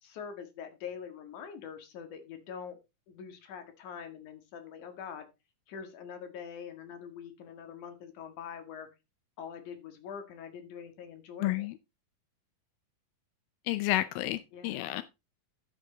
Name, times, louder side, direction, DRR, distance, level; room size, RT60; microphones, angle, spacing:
voice 1, 0.0-2.8 3.1-5.3 5.7-8.9 9.4-11.7 14.5-14.9, left 7 dB, 65° left, 3.1 m, -44 dB
voice 2, 11.4-11.7 13.7-15.0, left 16 dB, 90° left, 2.4 m, -30 dB
12.5 x 6.5 x 3.9 m
omnidirectional pair, 4.0 m